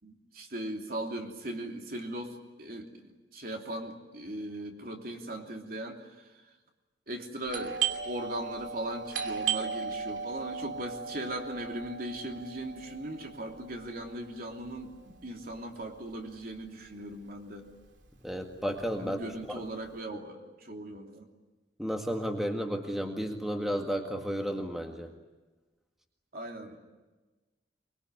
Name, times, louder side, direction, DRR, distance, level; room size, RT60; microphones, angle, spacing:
voice 1, 0.0-6.3 7.1-7.8 8.0-17.7 19.0-21.3 26.3-26.8, right 1 dB, 55° right, 2 dB, 3.1 m, -39 dB
Doorbell, 7.5-16.9 17.1-17.2 17.9-18.2 18.5-19.9, right 6 dB, 85° right, 2.8 m, -37 dB
voice 2, 18.2-19.2 19.5-19.6 21.8-25.1, equal, ahead, 3 dB, 1.9 m, -32 dB
24.0 x 22.5 x 9.8 m, 1.2 s
head